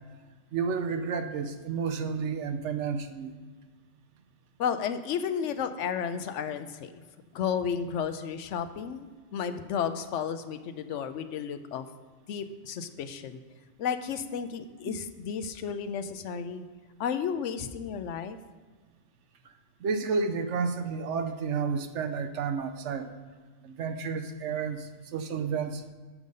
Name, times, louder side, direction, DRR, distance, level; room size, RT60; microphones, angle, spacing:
voice 1, 0.5-3.3 19.8-23.1 23.6-25.8, right 5 dB, 70° right, 8 dB, 0.9 m, -31 dB
voice 2, 4.6-7.0 7.3-11.8 12.3-13.4 13.8-16.7 17.0-18.4, left 7 dB, 70° left, 10 dB, 0.9 m, -32 dB
7.3 x 5.4 x 6.4 m, 1.4 s
omnidirectional pair, 1.3 m